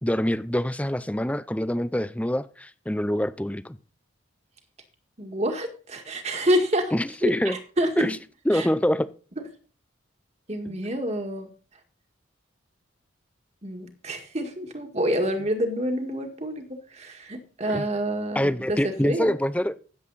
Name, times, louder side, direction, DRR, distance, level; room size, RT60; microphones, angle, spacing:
voice 1, 0.0-3.8 6.9-7.6 8.0-8.2 8.5-9.1 10.7-10.8 17.7-17.8 18.3-19.7, equal, 5° left, 14 dB, 0.5 m, -25 dB
voice 2, 5.2-6.9 7.2-7.9 8.5-8.7 10.5-11.5 13.6-16.6 16.9-19.3, equal, 35° right, 4 dB, 1.9 m, -27 dB
16.0 x 7.6 x 4.1 m, 0.39 s
head